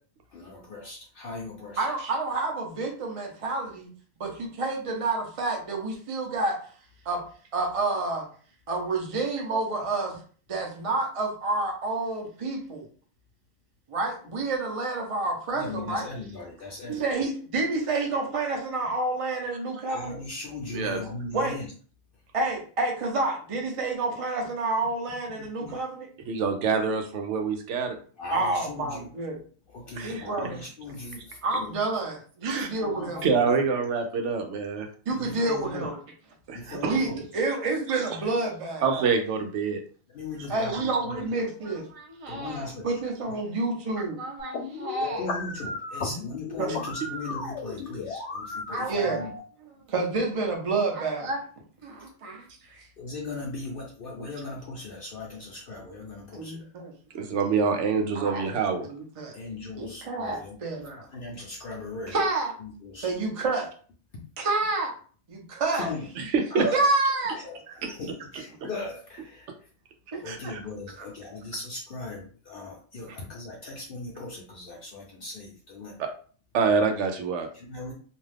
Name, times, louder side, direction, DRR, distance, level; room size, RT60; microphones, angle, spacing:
voice 1, 0.3-1.9 15.5-17.2 19.9-21.7 25.4-25.8 28.2-29.1 29.7-31.7 32.8-33.6 35.1-35.9 36.5-37.2 40.1-41.4 42.3-42.9 45.0-49.3 53.0-56.6 59.3-60.6 61.1-62.2 62.6-63.1 65.7-66.0 66.5-66.9 67.3-69.5 70.2-75.9 77.5-77.9, left 3 dB, 60° left, -2 dB, 0.8 m, -38 dB
voice 2, 1.8-3.9 4.2-6.6 7.0-7.2 7.5-8.3 8.7-10.2 10.5-12.8 13.9-16.1 16.9-20.2 21.3-21.6 22.3-26.1 28.3-29.4 30.0-30.6 31.4-33.2 35.1-36.0 36.8-38.9 40.5-45.3 46.6-46.9 48.7-49.3 49.6-51.4 51.8-52.9 54.2-54.3 56.3-56.9 58.1-58.4 58.8-59.3 59.7-61.1 62.1-62.5 63.0-63.7 64.4-64.9 65.3-65.9 66.7-67.4 70.1-70.5, right 3 dB, 35° right, 1 dB, 0.6 m, -29 dB
voice 3, 26.3-28.0 30.0-30.5 31.5-31.6 32.4-32.7 33.2-34.9 36.5-37.0 37.9-38.0 38.8-39.8 40.7-40.9 57.1-58.9 66.2-66.6 67.8-67.9 68.3-68.4 70.2-70.6 71.0-71.1 73.1-73.2 76.0-76.1 76.5-77.5, right 5 dB, 85° right, 5 dB, 0.9 m, -26 dB
sound 1, 44.4-49.4, left 3 dB, 85° left, 0.9 m, -35 dB
2.5 x 2.3 x 3.3 m, 0.42 s
omnidirectional pair, 1.2 m